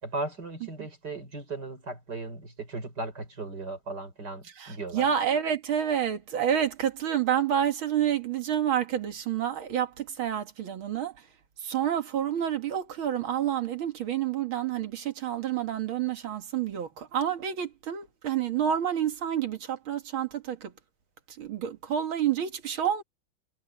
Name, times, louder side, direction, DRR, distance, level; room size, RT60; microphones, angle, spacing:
voice 1, 0.0-5.1, right 2 dB, 55° right, 5.8 m, -37 dB
voice 2, 4.6-11.1 11.6-20.7 21.4-23.0, right 9 dB, 85° right, 2.6 m, -29 dB
omnidirectional pair, 2.2 m